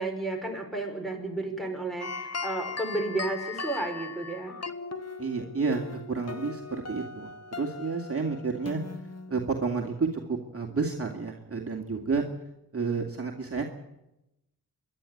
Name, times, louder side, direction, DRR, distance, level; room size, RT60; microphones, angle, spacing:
voice 1, 0.0-4.6, right 2 dB, ahead, 0 dB, 5.6 m, -32 dB
sound 1, 2.0-9.5, left 4 dB, 40° left, 1.3 m, -39 dB
voice 2, 5.2-8.8 9.3-12.2 12.7-13.6, right 4 dB, 40° right, 0 dB, 2.6 m, -30 dB
27.0 x 11.5 x 9.4 m, 0.90 s
wide cardioid pair, 80°, 37 cm